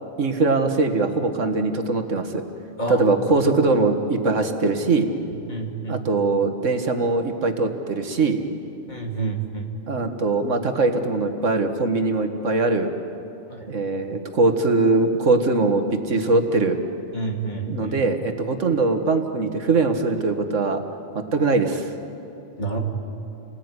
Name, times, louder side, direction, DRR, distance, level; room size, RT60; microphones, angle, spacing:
voice 1, 0.2-2.4 2.9-5.1 5.9-8.4 9.9-12.9 13.7-16.8 17.7-20.8 21.1-21.9, right 3 dB, 85° right, 6 dB, 2.0 m, -21 dB
voice 2, 2.8-3.1 5.5-6.0 8.9-9.7 13.5-13.7 17.1-17.9 22.6-22.8, right 3 dB, 35° left, 1 dB, 2.9 m, -29 dB
29.5 x 19.5 x 9.7 m, 2.8 s
omnidirectional pair, 1.3 m